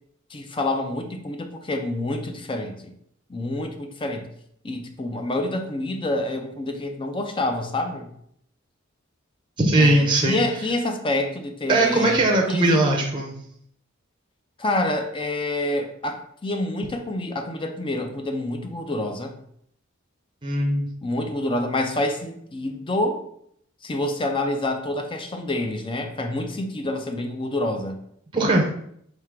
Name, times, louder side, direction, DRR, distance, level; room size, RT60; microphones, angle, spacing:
voice 1, 0.3-2.9 3.3-4.3 4.6-8.1 9.8-12.8 14.6-19.4 21.0-23.3 23.8-28.1, left 1 dB, 25° left, 6 dB, 0.5 m, -27 dB
voice 2, 9.6-10.4 11.7-13.4 20.4-20.9 28.3-28.7, right 2 dB, 25° right, 1 dB, 0.6 m, -19 dB
3.6 x 2.8 x 4.5 m, 0.69 s
head